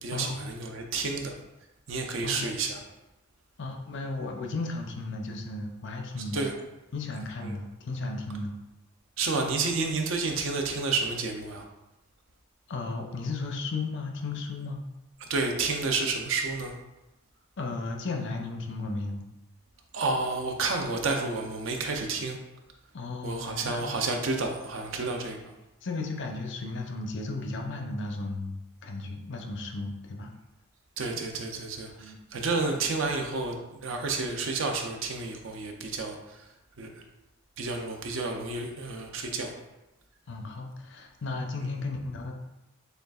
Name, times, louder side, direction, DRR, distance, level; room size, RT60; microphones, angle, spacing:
voice 1, 0.0-1.3 1.9-2.8 6.3-6.5 7.4-7.6 9.2-11.6 15.2-16.8 19.9-22.4 23.2-25.5 31.0-36.2 36.8-36.9 37.6-39.5, right 3 dB, 65° right, 3 dB, 0.5 m, -30 dB
voice 2, 3.6-6.4 6.9-8.6 12.7-14.8 17.6-19.2 22.9-23.9 24.4-24.5 25.8-30.3 31.9-32.2 40.3-42.3, left 3 dB, 55° left, 2 dB, 0.5 m, -35 dB
6.5 x 2.4 x 2.3 m, 0.97 s
head